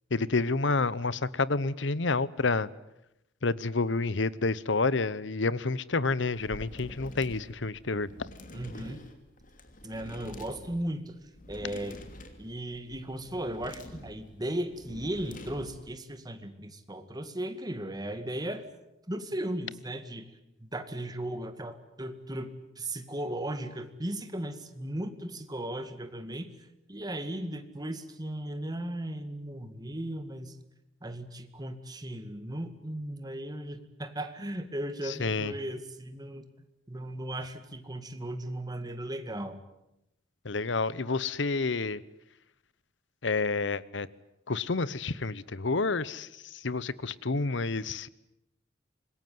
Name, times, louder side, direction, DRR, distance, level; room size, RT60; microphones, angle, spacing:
voice 1, 0.1-2.7 3.4-8.1 35.2-35.5 40.4-42.0 43.2-44.1 44.5-48.1, left 3 dB, 65° left, 19 dB, 0.9 m, -29 dB
sound 1, 6.3-16.0, left 1 dB, 45° left, 2.9 m, -47 dB
voice 2, 8.5-9.0 9.8-11.1 11.5-12.0 12.4-18.6 19.1-20.3 20.6-22.5 22.8-26.5 26.9-30.6 31.0-36.5 36.9-39.6, right 1 dB, 20° right, 9 dB, 2.1 m, -36 dB
25.5 x 21.5 x 9.5 m, 0.86 s
head